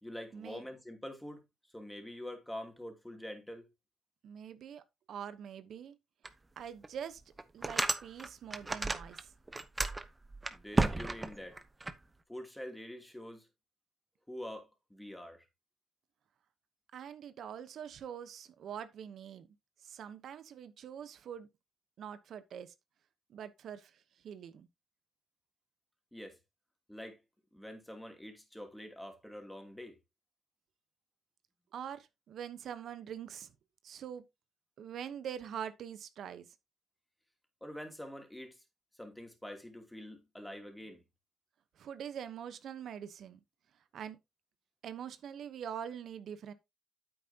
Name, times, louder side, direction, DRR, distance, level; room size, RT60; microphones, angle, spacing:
voice 1, 0.0-1.4 1.7-3.7 10.5-11.6 12.3-13.5 14.3-15.4 26.1-26.4 26.9-27.2 27.5-30.0 37.6-38.6 39.0-41.0, left 1 dB, 5° left, 2.9 m, -45 dB
voice 2, 4.2-6.0 6.6-7.2 7.5-9.3 16.9-19.5 19.8-21.5 22.0-22.7 23.3-24.7 31.7-33.5 33.8-34.2 34.8-36.5 41.8-43.4 43.9-44.2 44.8-46.5, right 8 dB, 65° right, 1.0 m, -44 dB
sound 1, 6.2-6.3 6.8-6.9 7.4-9.2 9.5-11.9, right 2 dB, 20° right, 0.9 m, -32 dB
9.2 x 8.0 x 2.9 m
cardioid pair, 90°, 0 cm